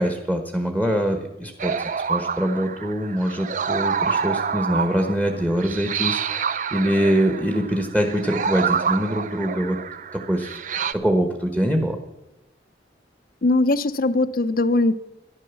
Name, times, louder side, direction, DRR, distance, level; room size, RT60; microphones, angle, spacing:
voice 1, 0.0-9.8 10.1-10.6 10.9-12.0, equal, 10° right, 1.2 m, -24 dB
sound 1, 1.6-10.9, right 6 dB, 45° right, 0.6 m, -27 dB
voice 2, 13.4-14.9, left 2 dB, 55° left, 0.7 m, -20 dB
13.0 x 11.5 x 7.1 m
head